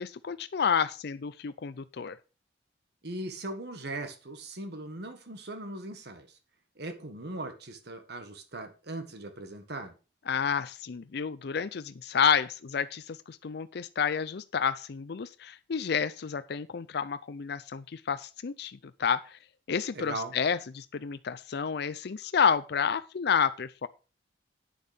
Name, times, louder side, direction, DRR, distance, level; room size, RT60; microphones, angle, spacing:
voice 1, 0.0-2.2 10.3-19.4 19.7-23.9, left 6 dB, 60° left, 0.5 m, -30 dB
voice 2, 3.0-6.4 6.7-9.9 19.9-20.4, right 2 dB, 65° right, 1.6 m, -39 dB
9.4 x 6.7 x 5.1 m
head